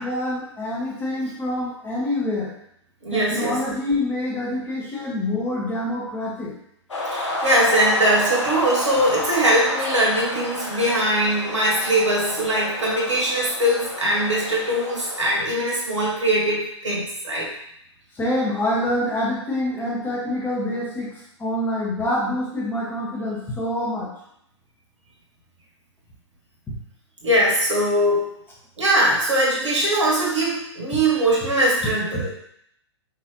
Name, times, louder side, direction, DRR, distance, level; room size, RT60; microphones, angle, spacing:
voice 1, 0.0-2.5 3.1-6.5 18.2-21.1 21.4-24.1 26.7-26.8, left 1 dB, 15° left, -4 dB, 1.4 m, -26 dB
voice 2, 3.0-3.7 7.1-17.5 27.2-28.3 28.8-32.3, right 1 dB, 80° right, -4 dB, 1.8 m, -21 dB
sound 1, 6.9-15.4, left 1 dB, 75° left, 1.2 m, -30 dB
4.9 x 3.2 x 3.0 m, 0.73 s
figure-of-eight pair, 115°, 15 cm